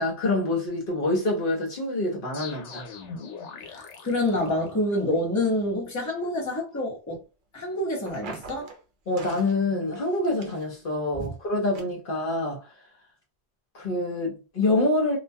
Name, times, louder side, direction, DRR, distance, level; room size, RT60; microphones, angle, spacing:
voice 1, 0.0-2.9 9.1-12.7 13.7-15.2, left 2 dB, 55° left, 0.9 m, -26 dB
sound 1, 2.3-5.1, left 5 dB, 90° left, 0.9 m, -41 dB
voice 2, 3.6-7.2 7.5-8.7 11.1-11.3, left 1 dB, 20° left, 0.7 m, -27 dB
sound 2, 8.0-8.8 9.2-9.6 9.9-10.8 11.2-11.3 11.7-11.8, right 4 dB, 55° right, 0.7 m, -42 dB
2.3 x 2.2 x 2.6 m
omnidirectional pair, 1.1 m